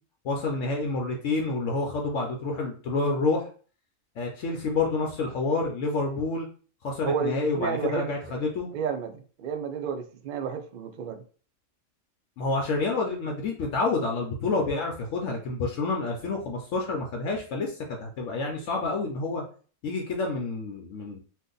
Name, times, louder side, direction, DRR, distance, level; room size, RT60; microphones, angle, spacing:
voice 1, 0.2-3.5 4.2-6.5 6.8-8.7 12.4-19.4 19.8-21.2, left 3 dB, 70° left, 1 dB, 0.9 m, -28 dB
voice 2, 7.0-8.1 8.7-11.2, right 6 dB, 70° right, 6 dB, 0.4 m, -31 dB
2.7 x 2.5 x 3.7 m, 0.40 s
omnidirectional pair, 1.4 m